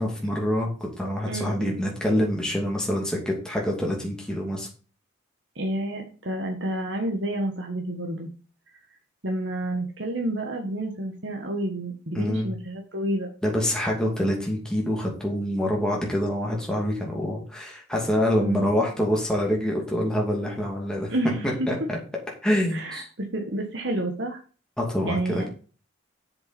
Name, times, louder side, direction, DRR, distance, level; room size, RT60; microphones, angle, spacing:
voice 1, 0.0-4.7 12.1-12.5 13.4-21.1 21.7-22.0 22.4-23.1 24.8-25.5, equal, 5° left, -2 dB, 2.6 m, -26 dB
voice 2, 1.3-1.8 5.5-8.3 9.2-13.3 18.4-18.7 21.1-21.7 22.7-24.4 25.0-25.5, right 1 dB, 60° right, 2 dB, 1.6 m, -29 dB
7.7 x 7.3 x 4.3 m, 0.37 s
head